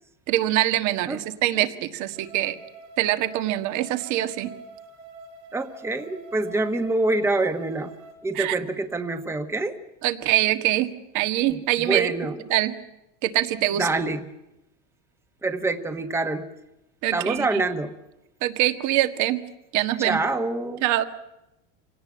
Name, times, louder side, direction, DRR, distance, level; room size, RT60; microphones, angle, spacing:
voice 1, 0.3-2.6 3.0-4.5 8.4-8.6 10.0-12.1 12.5-12.8 13.2-13.9 17.0-17.6 18.4-19.4 19.7-20.2 20.8-21.0, right 14 dB, 55° right, 10 dB, 1.7 m, -24 dB
sound 1, 2.1-8.1, right 3 dB, 75° right, 4.9 m, -45 dB
voice 2, 5.5-7.9 8.2-9.8 11.5-12.4 13.8-14.3 15.4-16.5 17.1-17.9 20.0-20.8, right 2 dB, 5° right, 8 dB, 1.3 m, -26 dB
25.0 x 18.0 x 8.7 m, 0.92 s
supercardioid pair, 130°, 36 cm